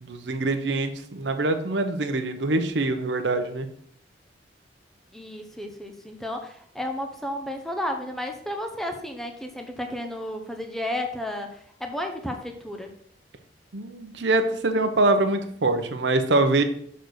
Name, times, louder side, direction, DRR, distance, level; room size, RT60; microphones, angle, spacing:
voice 1, 0.0-3.7 13.7-16.6, right 2 dB, 80° right, 7 dB, 0.8 m, -24 dB
voice 2, 5.1-12.9, left 1 dB, ahead, 4 dB, 0.7 m, -32 dB
6.5 x 4.0 x 6.3 m, 0.63 s
head